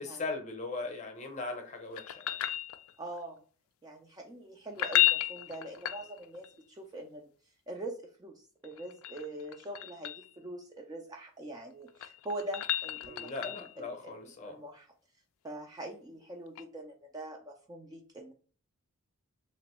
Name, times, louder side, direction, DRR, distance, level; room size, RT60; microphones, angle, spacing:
voice 1, 0.0-2.4 13.0-14.6, left 3 dB, 30° left, 4 dB, 0.7 m, -39 dB
sound 1, 2.0-3.2 4.7-6.5 8.6-10.3 11.7-13.8 16.5-16.6, left 13 dB, 70° left, 0.3 m, -32 dB
voice 2, 3.0-3.4 3.8-7.3 7.7-14.9 15.4-18.3, right 1 dB, 15° right, 2 dB, 0.3 m, -43 dB
3.0 x 2.6 x 2.9 m, 0.43 s
head